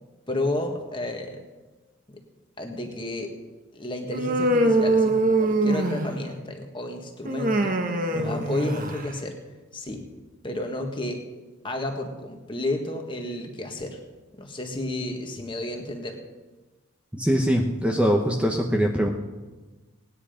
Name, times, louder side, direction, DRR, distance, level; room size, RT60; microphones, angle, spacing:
voice 1, 0.3-1.4 2.1-2.2 2.6-3.3 3.7-7.8 8.1-9.4 9.7-10.0 10.4-11.2 11.6-14.0 14.4-16.2, left 1 dB, 25° left, 3 dB, 1.8 m, -31 dB
Human voice, 4.1-6.4 7.3-9.1, right 2 dB, 40° right, 1.2 m, -23 dB
voice 2, 17.1-19.1, equal, 5° right, 1 dB, 1.0 m, -22 dB
19.0 x 10.0 x 5.1 m, 1.2 s
head